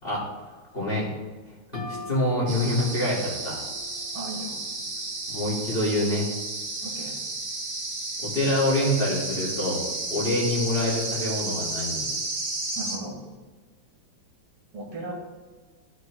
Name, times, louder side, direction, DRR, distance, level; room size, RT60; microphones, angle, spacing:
voice 1, 0.7-1.1 1.7-3.6 5.3-6.3 8.2-9.8 10.1-12.1, left 1 dB, 30° left, -7 dB, 2.3 m, -26 dB
sound 1, 1.7-5.3, left 1 dB, 20° right, 1.8 m, -43 dB
sound 2, 2.5-13.0, right 2 dB, 50° right, 1.8 m, -32 dB
voice 2, 4.1-4.7 6.8-7.2 12.7-13.2 14.7-15.1, right 2 dB, 80° right, -3 dB, 2.8 m, -36 dB
13.5 x 6.4 x 2.3 m, 1.4 s
omnidirectional pair, 2.2 m